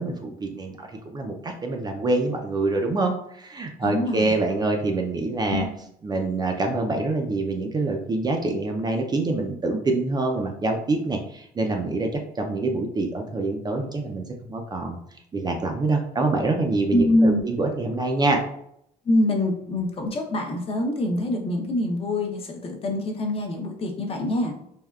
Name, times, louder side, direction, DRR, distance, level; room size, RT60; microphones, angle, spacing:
voice 1, 0.0-5.7 6.0-12.1 12.4-15.0 15.3-18.4, right 2 dB, 25° right, 3 dB, 0.4 m, -25 dB
voice 2, 3.8-4.3 5.5-5.7 16.9-17.4 19.1-24.5, left 1 dB, 35° left, 2 dB, 0.6 m, -24 dB
3.4 x 2.2 x 2.3 m, 0.73 s
cardioid pair, 110°, 17 cm